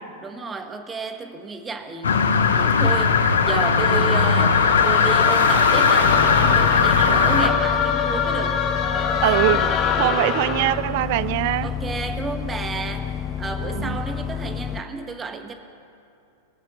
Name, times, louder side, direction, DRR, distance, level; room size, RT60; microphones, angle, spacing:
voice 1, 0.2-2.1 2.6-8.6 8.9-9.6 11.6-15.5, right 4 dB, 20° right, 1.3 m, -32 dB
sound 1, 2.0-7.5, left 5 dB, 80° left, 0.9 m, -18 dB
sound 2, 3.6-10.9, left 6 dB, 35° left, 1.3 m, -24 dB
sound 3, 6.0-14.8, left 8 dB, 20° left, 0.5 m, -30 dB
voice 2, 9.2-11.7 13.7-14.0, right 16 dB, 55° right, 0.4 m, -23 dB
20.5 x 7.2 x 6.2 m
hypercardioid pair, 105°, 0 cm